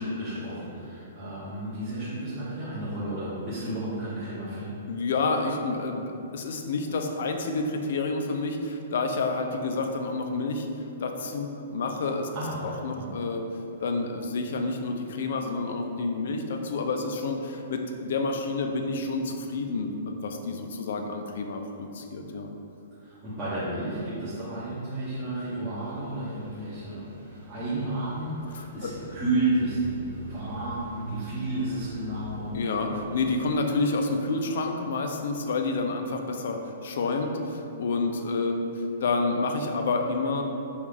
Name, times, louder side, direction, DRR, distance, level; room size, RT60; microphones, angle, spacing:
voice 1, 0.0-4.7 12.3-13.1 23.0-32.5, right 2 dB, 15° right, -12 dB, 0.7 m, -32 dB
voice 2, 4.9-10.7 11.0-12.3 12.6-13.5 13.8-22.5 28.5-28.9 32.5-40.4, left 3 dB, 55° left, 4 dB, 0.4 m, -29 dB
sound 1, 25.8-33.8, right 1 dB, 85° right, 1.2 m, -45 dB
5.2 x 2.3 x 3.3 m, 2.8 s
hypercardioid pair, 180°, 0 cm